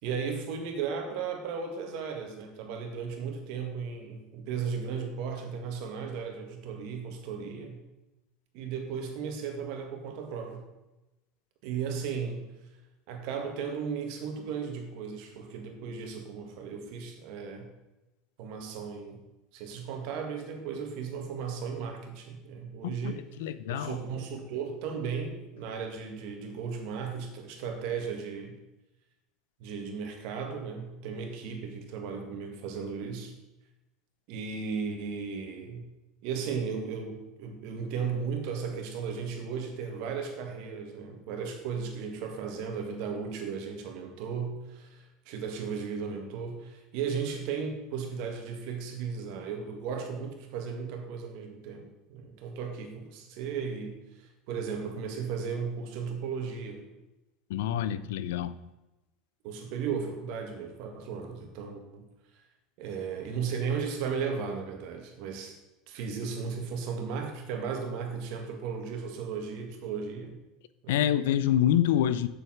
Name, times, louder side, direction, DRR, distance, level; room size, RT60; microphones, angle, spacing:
voice 1, 0.0-7.8 8.5-10.7 11.6-12.4 13.1-17.7 18.4-19.2 19.5-23.2 23.7-28.6 29.6-33.3 34.3-35.9 36.2-56.9 59.4-62.1 62.8-65.6 65.9-70.4 70.8-71.1, right 6 dB, 65° right, 4 dB, 1.9 m, -35 dB
voice 2, 22.8-24.0 57.5-58.5 70.9-72.3, left 11 dB, 85° left, 14 dB, 0.5 m, -27 dB
7.2 x 7.1 x 5.9 m, 1.0 s
supercardioid pair, 120°, 0 cm